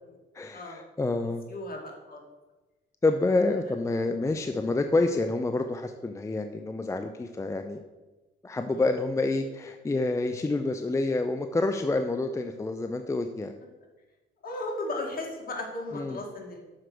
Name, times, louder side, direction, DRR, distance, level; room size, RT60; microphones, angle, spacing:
voice 1, 0.3-1.4 3.0-7.8 8.4-13.5 15.9-16.2, left 2 dB, 15° left, 7 dB, 0.4 m, -28 dB
voice 2, 1.2-2.2 3.4-3.6 8.7-8.8 14.4-16.7, left 2 dB, 45° left, 0 dB, 2.0 m, -36 dB
6.4 x 4.7 x 6.0 m, 1.2 s
cardioid pair, 90°, 20 cm